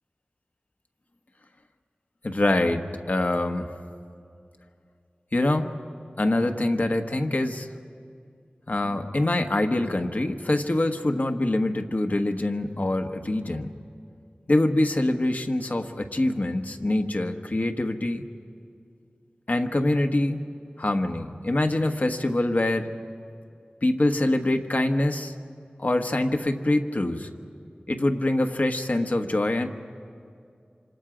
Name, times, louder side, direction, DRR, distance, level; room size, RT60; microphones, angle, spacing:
voice 1, 2.2-3.7 5.3-5.8 6.2-7.7 8.7-13.7 14.5-18.2 19.5-20.5 20.8-22.9 23.8-25.3 25.8-27.3 27.9-29.7, left 1 dB, 55° left, 5 dB, 1.2 m, -24 dB
26.5 x 26.5 x 5.0 m, 2.4 s
wide cardioid pair, 55°, 3 cm